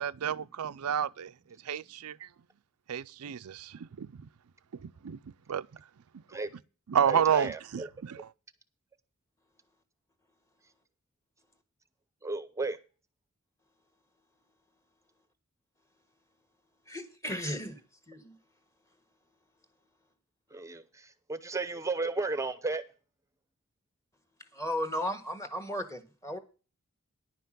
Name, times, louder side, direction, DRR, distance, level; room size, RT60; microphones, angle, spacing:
voice 1, 0.0-1.3 1.7-2.2 2.9-4.1 4.8-5.2 5.5-5.7 6.9-8.3, right 8 dB, 90° right, 0.5 m, -30 dB
voice 2, 7.0-7.9 12.2-12.8 20.5-22.8, right 3 dB, 15° right, 0.7 m, -34 dB
voice 3, 16.9-17.8 18.1-18.4 24.5-26.4, equal, 15° left, 1.5 m, -35 dB
10.5 x 5.8 x 7.4 m
head